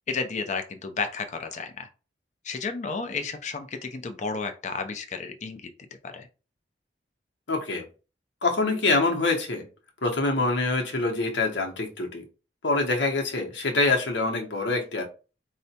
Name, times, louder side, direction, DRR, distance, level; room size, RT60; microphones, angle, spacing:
voice 1, 0.1-1.9 2.4-5.7 6.0-6.3, left 4 dB, 40° left, 7 dB, 0.5 m, -32 dB
voice 2, 7.5-7.8 8.4-9.7 10.0-12.2 12.6-15.0, left 3 dB, 85° left, 2 dB, 0.9 m, -25 dB
4.7 x 2.1 x 2.8 m, 0.33 s
head